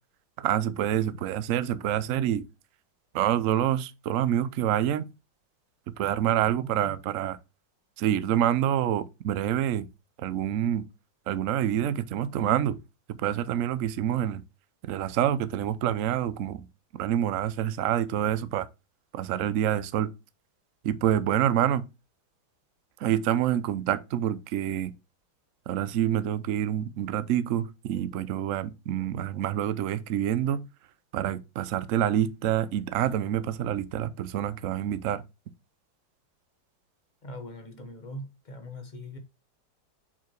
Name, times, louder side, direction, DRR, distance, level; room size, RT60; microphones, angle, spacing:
voice 1, 0.4-2.4 3.1-5.1 6.0-7.4 8.0-9.9 10.2-10.8 11.3-12.8 13.1-14.4 14.8-16.7 16.9-18.7 19.1-20.1 20.8-21.8 23.0-24.9 25.7-30.6 31.1-35.2, right 11 dB, 85° right, 0.7 m, -27 dB
voice 2, 37.2-39.2, left 1 dB, 30° left, 1.0 m, -41 dB
5.9 x 4.6 x 4.4 m
omnidirectional pair, 2.2 m